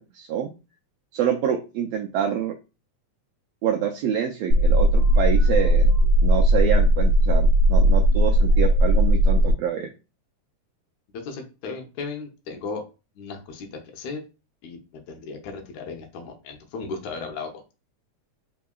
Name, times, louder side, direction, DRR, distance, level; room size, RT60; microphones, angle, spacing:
voice 1, 0.1-0.5 1.1-2.5 3.6-5.9 6.2-9.9, right 9 dB, 85° right, 3 dB, 1.4 m, -26 dB
sound 1, 4.5-9.5, equal, 65° right, 1.5 m, -17 dB
voice 2, 11.1-12.8 13.2-14.2 14.6-17.6, left 4 dB, 80° left, 4 dB, 2.1 m, -36 dB
4.7 x 3.6 x 2.3 m, 0.30 s
omnidirectional pair, 3.4 m